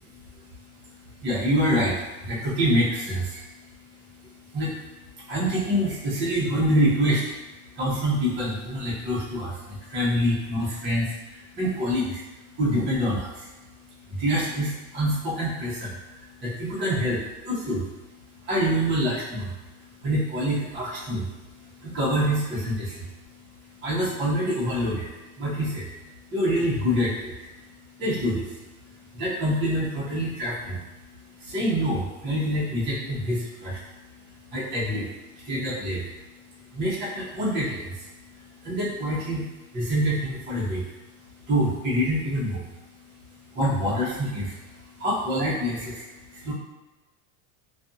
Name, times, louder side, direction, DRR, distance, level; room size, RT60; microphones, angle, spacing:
voice 1, 1.2-3.4 4.1-4.2 4.5-4.7 5.2-7.3 7.7-12.2 12.5-13.5 14.1-17.9 18.4-19.5 20.0-23.1 23.8-25.1 25.4-25.9 26.3-27.4 28.0-28.6 29.1-30.8 31.4-33.8 34.5-36.1 36.7-40.9 41.5-42.7 43.5-46.5, equal, 25° right, -8 dB, 0.9 m, -26 dB
2.5 x 2.4 x 2.6 m, 1.1 s
supercardioid pair, 135°, 44 cm